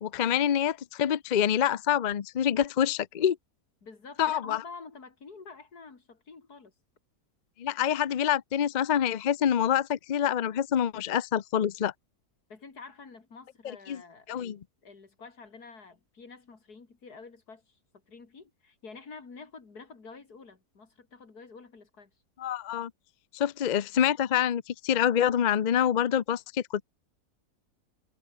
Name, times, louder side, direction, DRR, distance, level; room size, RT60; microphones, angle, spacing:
voice 1, 0.0-3.4 4.2-4.6 7.6-11.9 13.9-14.0 14.3-14.6 22.4-22.9 23.3-26.8, left 9 dB, 50° left, 0.5 m, -26 dB
voice 2, 3.8-6.7 12.5-17.8 18.1-22.1, left 4 dB, 85° left, 3.4 m, -48 dB
omnidirectional pair, 1.6 m